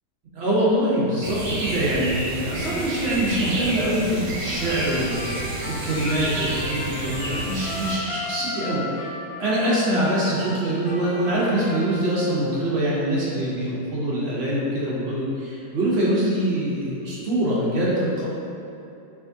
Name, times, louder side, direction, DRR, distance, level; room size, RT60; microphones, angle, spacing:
voice 1, 0.3-9.1 9.4-18.3, right 1 dB, 60° right, -6 dB, 0.7 m, -24 dB
sound 1, 1.2-8.0, right 2 dB, 85° right, 1.5 m, -30 dB
Trumpet, 4.6-12.3, left 1 dB, 70° left, 0.5 m, -35 dB
4.8 x 3.5 x 2.6 m, 2.9 s
omnidirectional pair, 1.8 m